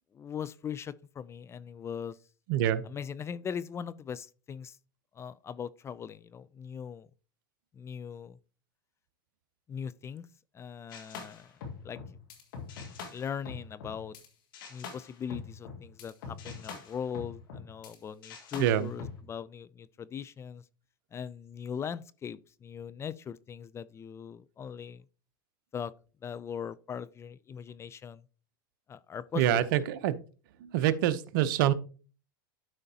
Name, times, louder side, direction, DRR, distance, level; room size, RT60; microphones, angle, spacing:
voice 1, 0.1-2.2 2.8-4.8 5.2-7.1 7.7-8.4 9.7-10.3 10.5-11.5 11.8-12.0 13.1-14.2 14.7-20.6 21.1-25.0 25.7-25.9 26.2-28.2 28.9-29.7, left 7 dB, 25° left, 0.4 m, -40 dB
voice 2, 2.5-2.8 18.6-18.9 29.3-30.1 30.6-31.7, right 11 dB, 65° right, 0.8 m, -26 dB
sound 1, 10.9-14.3 14.5-18.0 18.2-19.2, left 5 dB, 75° left, 1.7 m, -44 dB
12.0 x 5.0 x 2.8 m
hypercardioid pair, 110°, 12 cm